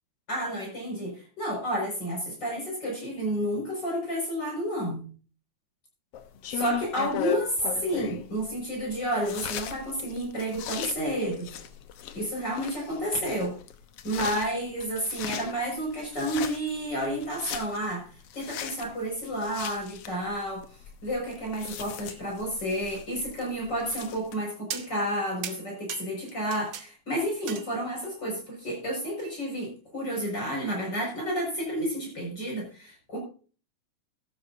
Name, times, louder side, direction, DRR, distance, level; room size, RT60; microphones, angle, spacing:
voice 1, 0.3-5.1 6.5-11.5 12.1-13.5 14.0-18.0 18.3-20.6 21.0-33.2, equal, 35° left, -2 dB, 6.5 m, -31 dB
sound 1, 6.1-24.3, left 9 dB, 65° left, 1.6 m, -39 dB
sound 2, 23.9-24.4 24.7-25.2 25.4-26.9 27.2-28.1 29.2-29.3, right 8 dB, 65° right, 1.2 m, -39 dB
15.0 x 12.5 x 2.7 m, 0.38 s
omnidirectional pair, 3.6 m